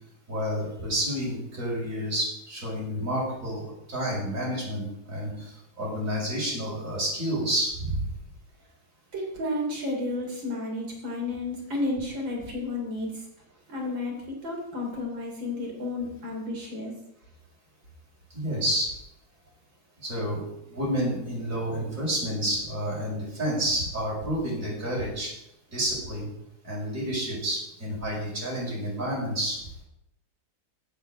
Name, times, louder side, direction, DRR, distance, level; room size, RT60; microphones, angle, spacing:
voice 1, 0.3-8.1 18.3-18.9 20.0-25.3 25.7-26.3 26.6-29.6, equal, 40° right, -6 dB, 5.6 m, -29 dB
voice 2, 9.1-13.2 13.7-16.9, left 2 dB, 80° right, -1 dB, 3.9 m, -32 dB
8.3 x 7.8 x 7.8 m, 0.81 s
omnidirectional pair, 2.1 m